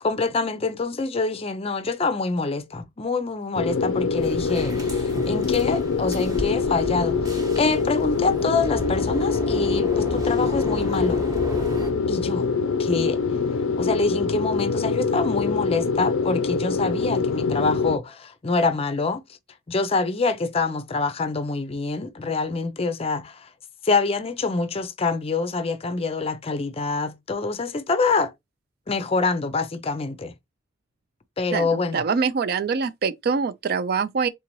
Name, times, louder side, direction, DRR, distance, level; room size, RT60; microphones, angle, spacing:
voice 1, 0.0-11.2 12.1-12.5 12.8-13.2 13.8-19.2 19.7-23.5 23.8-28.3 28.9-30.3 31.4-32.0, left 3 dB, 30° left, 0.5 m, -26 dB
sound 1, 3.6-18.0, left 5 dB, 85° left, 0.4 m, -24 dB
sound 2, 4.1-11.9, equal, 20° right, 0.9 m, -34 dB
voice 2, 31.5-34.3, right 5 dB, 50° right, 0.3 m, -24 dB
3.9 x 3.7 x 3.0 m
head